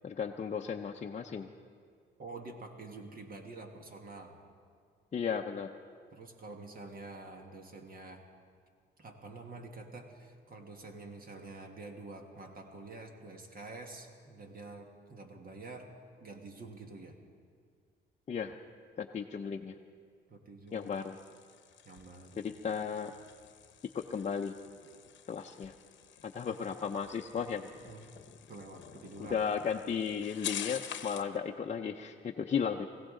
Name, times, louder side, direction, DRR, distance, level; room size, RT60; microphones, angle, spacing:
voice 1, 0.0-1.5 5.1-5.7 18.3-18.5 19.0-19.7 20.7-21.2 22.4-23.1 24.1-24.5 25.3-25.7 26.2-27.7 29.2-32.9, left 6 dB, 35° left, 1 dB, 0.6 m, -35 dB
voice 2, 2.2-4.4 6.1-8.2 9.0-15.9 16.2-17.2 20.3-21.0 21.8-22.4 26.5-26.6 27.8-28.0 28.5-29.4, right 3 dB, 45° right, 3 dB, 1.6 m, -47 dB
sound 1, 20.7-31.4, left 10 dB, 65° left, 0.9 m, -47 dB
20.5 x 16.0 x 3.8 m, 2.1 s
cardioid pair, 90°, 20 cm